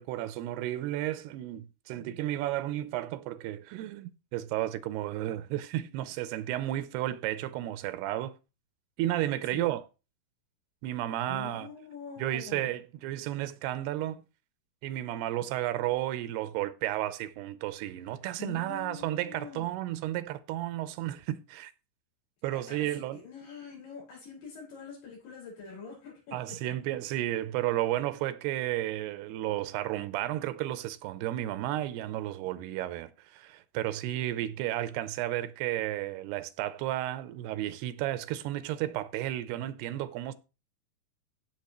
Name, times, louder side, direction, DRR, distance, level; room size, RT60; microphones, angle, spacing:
voice 1, 0.0-8.3 9.0-9.8 10.8-11.7 12.2-14.3 14.8-21.7 22.4-23.2 26.3-40.3, right 14 dB, 85° right, 2.7 m, -33 dB
voice 2, 11.3-12.7 18.4-19.7 22.5-26.6, left 5 dB, 80° left, 7.1 m, -45 dB
15.5 x 6.4 x 3.0 m
omnidirectional pair, 4.6 m